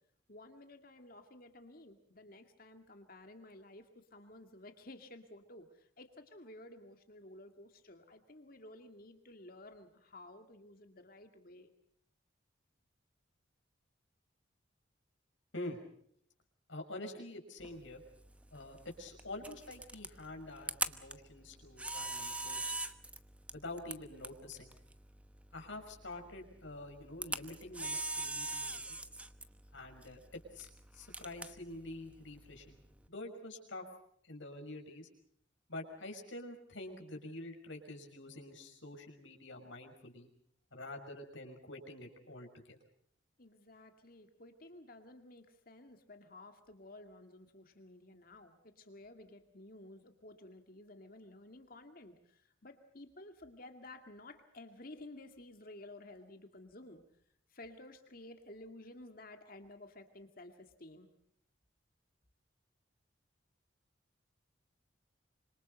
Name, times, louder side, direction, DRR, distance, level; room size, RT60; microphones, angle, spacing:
voice 1, 0.3-11.7 43.4-57.0 57.5-61.1, left 2 dB, 45° left, 6 dB, 2.2 m, -54 dB
voice 2, 16.7-18.0 18.5-22.7 23.5-24.7 25.5-29.0 29.7-32.8 33.1-33.8 34.3-35.1 35.7-40.3 40.7-42.8, left 2 dB, 75° left, 3 dB, 5.7 m, -47 dB
Camera, 17.6-33.1, right 2 dB, 5° right, 0.9 m, -43 dB
26.5 x 26.0 x 5.4 m, 0.67 s
head